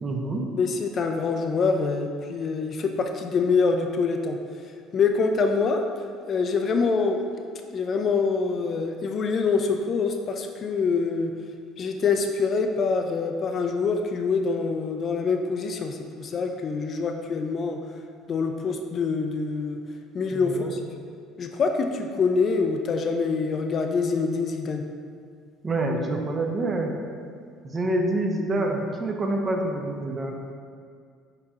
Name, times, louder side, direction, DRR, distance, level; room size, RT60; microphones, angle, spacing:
voice 1, 0.0-0.5 20.3-20.7 25.6-26.9 27.6-30.5, right 2 dB, 35° right, 2 dB, 0.6 m, -27 dB
voice 2, 0.6-4.4 4.9-5.8 6.3-7.2 7.7-11.3 11.8-17.8 18.3-19.8 20.1-20.8 21.4-24.8, left 4 dB, 45° left, 5 dB, 0.3 m, -25 dB
6.8 x 2.8 x 2.4 m, 2.2 s
supercardioid pair, 75°, 0 cm